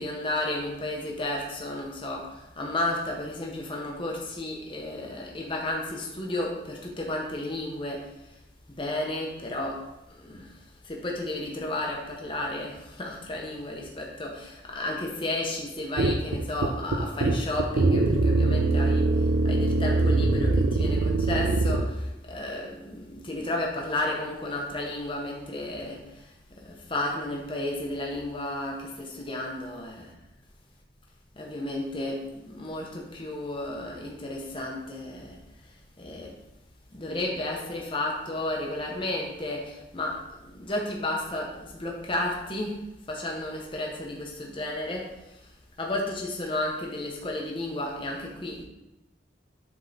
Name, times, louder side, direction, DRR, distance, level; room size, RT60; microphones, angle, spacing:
voice 1, 0.0-8.1 8.7-10.6 10.8-30.2 31.4-35.4 36.0-36.3 36.9-42.8 43.1-45.4 45.8-48.6, left 1 dB, 30° left, -1 dB, 0.9 m, -33 dB
sound 1, 16.0-21.9, right 2 dB, 80° right, 0.5 m, -23 dB
7.5 x 3.6 x 4.0 m, 0.95 s
head